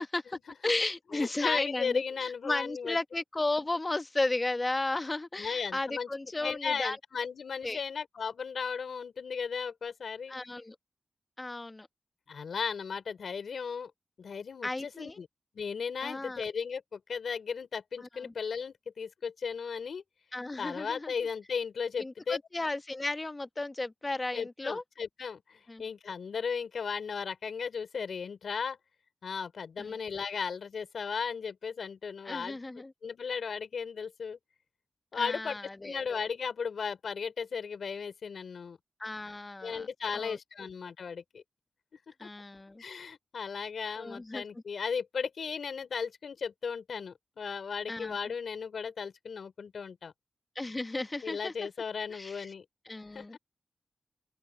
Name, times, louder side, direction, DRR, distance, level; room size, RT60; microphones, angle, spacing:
voice 1, 0.0-7.0 7.6-7.8 10.3-10.7 11.4-11.9 14.6-15.2 16.0-16.4 18.2-18.3 20.3-21.3 22.0-24.8 25.7-25.8 29.8-30.0 32.2-32.9 35.1-36.0 39.0-39.9 40.1-40.4 42.2-42.8 44.0-44.4 47.9-48.2 50.5-51.5 52.1-52.5 52.8-53.4, left 2 dB, 30° left, 1.4 m, -34 dB
voice 2, 1.1-3.0 5.4-6.1 6.4-10.4 12.3-13.9 14.2-15.3 15.5-20.0 20.6-22.4 24.3-28.8 29.2-32.6 33.0-34.4 35.1-38.8 39.6-41.4 42.1-42.3 42.8-50.1 51.2-52.6 53.1-53.4, left 6 dB, 80° left, 4.3 m, -36 dB
open air
cardioid pair, 65°, 0 cm